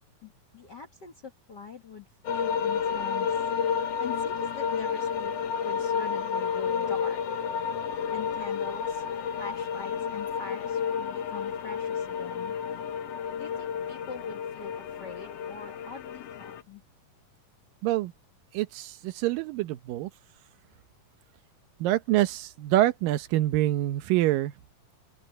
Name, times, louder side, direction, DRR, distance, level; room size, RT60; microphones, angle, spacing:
voice 1, 0.2-3.4 4.0-5.3 5.6-7.2 8.1-9.0 9.4-12.6 13.4-16.8, left 5 dB, 50° left, 1.3 m, -43 dB
sound 1, 2.2-16.6, left 7 dB, 65° left, 1.6 m, -31 dB
voice 2, 18.5-20.1 21.8-24.5, right 15 dB, 85° right, 2.6 m, -26 dB
open air
omnidirectional pair, 3.9 m